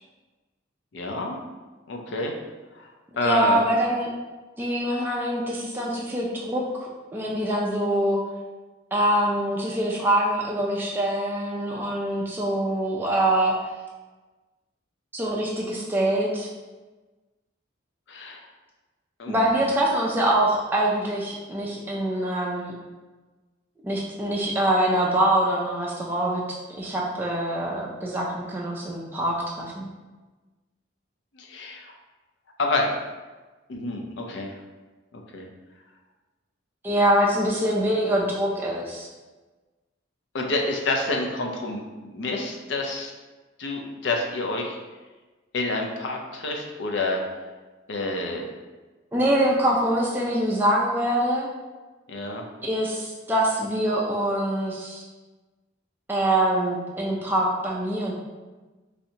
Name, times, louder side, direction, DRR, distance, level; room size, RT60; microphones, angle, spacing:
voice 1, 0.9-1.4 1.9-2.3 2.7-3.6 18.1-18.4 19.2-19.7 31.3-31.9 32.6-32.9 33.7-34.5 35.1-35.5 40.3-43.1 43.6-44.8 45.5-47.2 47.9-48.5 52.1-52.5, left 2 dB, 60° left, 1 dB, 0.5 m, -28 dB
voice 2, 3.2-4.1 4.6-8.2 8.9-13.6 15.1-16.5 19.3-22.7 23.8-26.4 26.8-29.9 36.8-39.1 49.1-51.5 52.6-55.0 56.1-58.1, right 1 dB, 10° right, -4 dB, 0.3 m, -24 dB
3.2 x 2.7 x 2.7 m, 1.2 s
head